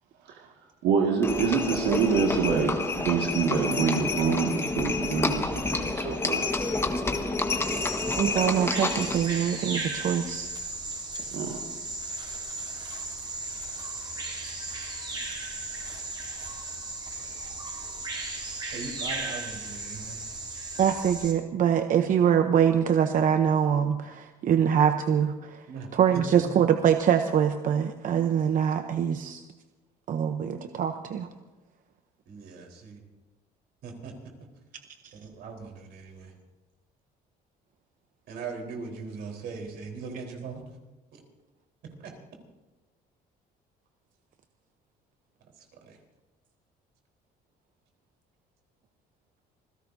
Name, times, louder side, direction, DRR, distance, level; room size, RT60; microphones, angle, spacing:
voice 1, 0.8-6.5 11.3-11.6, right 5 dB, 90° right, 0 dB, 2.0 m, -26 dB
Livestock farm animals working animals, 1.2-9.3, left 3 dB, 15° left, 1.4 m, -29 dB
Bird vocalization bird call bird song, 7.6-21.3, right 2 dB, 25° right, 4.1 m, -36 dB
voice 2, 8.2-10.5 20.8-25.6 25.9-29.4 30.1-31.3, right 8 dB, 55° right, 7 dB, 0.8 m, -24 dB
voice 3, 18.7-20.2 25.7-25.9 26.3-26.4 32.3-33.0 33.8-34.1 35.2-36.3 38.3-40.6 41.1-41.2 41.8-42.1 45.6-46.0, right 5 dB, 75° right, 1 dB, 4.1 m, -39 dB
27.0 x 16.5 x 2.7 m, 1.1 s
cardioid pair, 110°, 17 cm